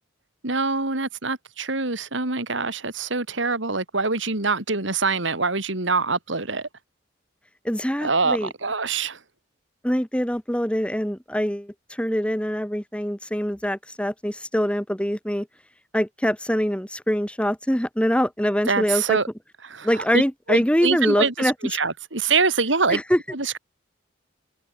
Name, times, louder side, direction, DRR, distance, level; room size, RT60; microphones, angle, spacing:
voice 1, 0.4-6.7 8.0-9.2 18.7-19.3 19.6-20.2 20.5-23.0 23.3-23.6, right 4 dB, 75° right, 3.2 m, -24 dB
voice 2, 7.6-8.5 9.8-15.5 15.9-19.2 19.8-21.5 22.9-23.4, equal, 5° left, 3.0 m, -24 dB
head